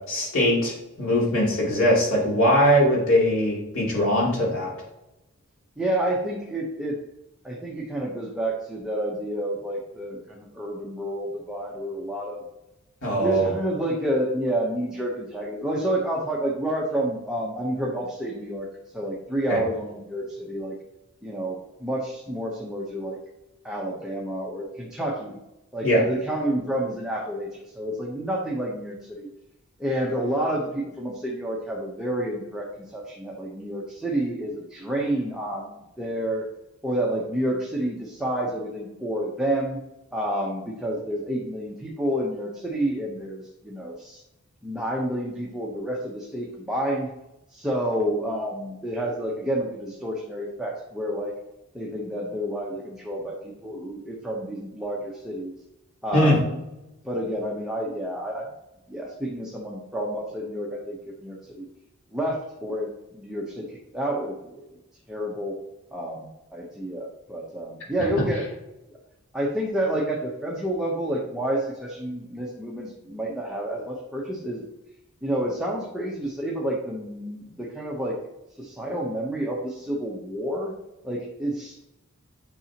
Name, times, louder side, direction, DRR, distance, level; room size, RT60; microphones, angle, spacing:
voice 1, 0.1-4.7 13.0-13.5 19.5-19.6 25.8-26.0 56.1-56.4, equal, 65° left, -4 dB, 3.1 m, -21 dB
voice 2, 5.8-7.0 7.4-12.4 13.2-18.7 18.9-20.7 21.2-23.2 23.6-25.4 25.7-29.3 29.8-36.5 36.8-39.8 40.1-44.2 44.6-47.1 47.5-51.3 51.7-55.6 56.0-56.6 57.0-58.5 58.9-61.7 62.1-64.6 65.1-65.6 65.9-68.4 68.9-69.0 69.3-74.6 75.2-78.2 78.6-80.7 81.0-81.8, right 1 dB, 5° right, -3 dB, 1.0 m, -29 dB
9.8 x 6.2 x 3.0 m, 0.93 s
head